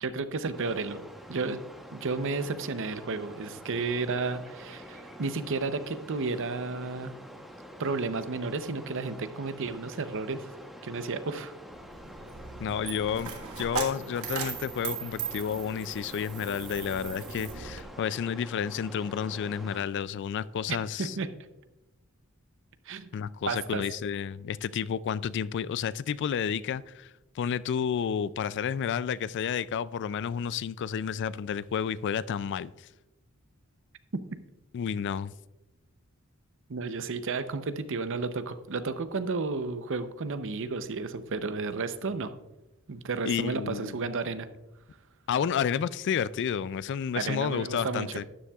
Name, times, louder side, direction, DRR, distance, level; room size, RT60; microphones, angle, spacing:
voice 1, 0.0-1.0 1.3-1.6 1.9-7.1 7.8-10.5 10.8-11.5 20.7-21.3 22.9-23.1 23.5-23.8 36.7-42.3 42.9-44.5 47.1-48.2, right 4 dB, 60° right, 0.7 m, -32 dB
sound 1, 0.5-19.9, equal, ahead, 0.9 m, -47 dB
Coin (dropping), 11.7-17.8, right 6 dB, 80° right, 1.5 m, -38 dB
voice 2, 12.6-21.2 23.1-27.1 27.4-32.7 34.7-35.3 43.3-44.0 45.3-48.2, left 7 dB, 55° left, 0.3 m, -31 dB
12.5 x 10.0 x 2.3 m
head